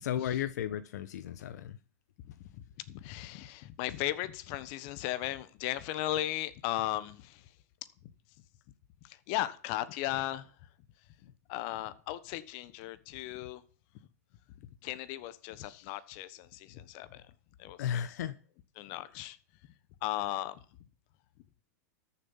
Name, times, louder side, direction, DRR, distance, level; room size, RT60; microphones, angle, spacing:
voice 1, 0.0-1.8 17.8-18.3, left 10 dB, 75° left, 0.9 m, -34 dB
voice 2, 2.2-7.5 9.0-10.5 11.5-13.6 14.8-17.3 17.6-18.1 18.8-19.4 20.0-20.6, left 14 dB, 50° left, 1.2 m, -36 dB
13.5 x 7.1 x 5.7 m
hypercardioid pair, 120°, 9 cm